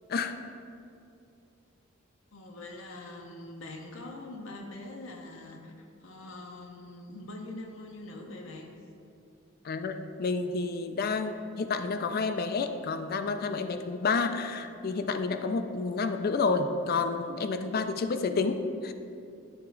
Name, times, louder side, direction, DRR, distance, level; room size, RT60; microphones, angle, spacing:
voice 1, 2.3-8.7, left 2 dB, 70° left, 2 dB, 0.7 m, -43 dB
voice 2, 9.6-18.9, left 4 dB, 45° left, 8 dB, 0.4 m, -30 dB
10.5 x 3.5 x 4.5 m, 2.5 s
head